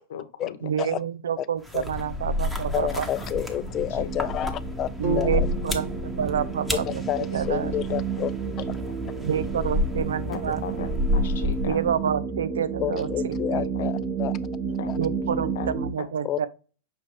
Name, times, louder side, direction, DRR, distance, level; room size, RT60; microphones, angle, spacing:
voice 1, 0.1-1.0 2.9-3.0 3.6-3.7 4.0-4.1 10.3-11.8 13.5-13.9 14.8-14.9 15.5-15.7 16.0-16.1, left 9 dB, 75° left, 0.8 m, -37 dB
voice 2, 0.6-3.1 5.0-5.9 6.2-7.7 9.2-10.7 11.6-13.7 15.0-16.5, right 8 dB, 85° right, 0.4 m, -28 dB
sound 1, 1.6-12.0, left 1 dB, 5° right, 1.0 m, -30 dB
sound 2, 2.1-15.9, right 6 dB, 30° right, 0.9 m, -32 dB
voice 3, 2.7-4.9 5.2-5.3 6.9-8.3 10.5-10.6 12.8-14.3 14.9-15.0 16.2-16.4, left 12 dB, 40° left, 0.4 m, -29 dB
sound 3, 5.0-9.1, equal, 60° right, 1.7 m, -37 dB
6.0 x 2.5 x 3.4 m
hypercardioid pair, 105°, 0 cm